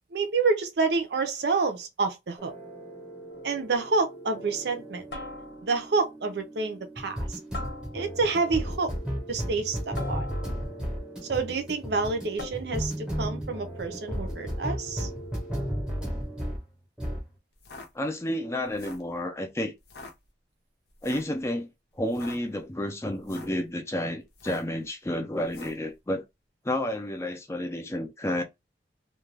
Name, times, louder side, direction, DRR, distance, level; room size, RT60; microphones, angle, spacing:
voice 1, 0.1-2.5 3.4-5.1 5.6-7.4 7.9-8.9 9.3-10.3 11.3-15.1, right 4 dB, 70° right, 0.5 m, -28 dB
sound 1, 2.4-16.7 17.0-17.3, equal, 5° right, 0.8 m, -35 dB
sound 2, 3.3-3.6 5.1-5.9 7.5-8.4 10.0-10.9 12.4-13.0, left 2 dB, 85° left, 1.0 m, -41 dB
sound 3, 17.5-17.9 18.6-19.1 19.8-20.1 21.0-21.3 22.0-22.4 23.1-23.6 24.3-24.8 25.5-25.8, left 3 dB, 65° left, 0.6 m, -45 dB
voice 2, 17.9-19.7 21.0-21.7 21.9-26.2 26.6-28.4, left 1 dB, 15° left, 0.4 m, -30 dB
2.4 x 2.2 x 3.2 m
head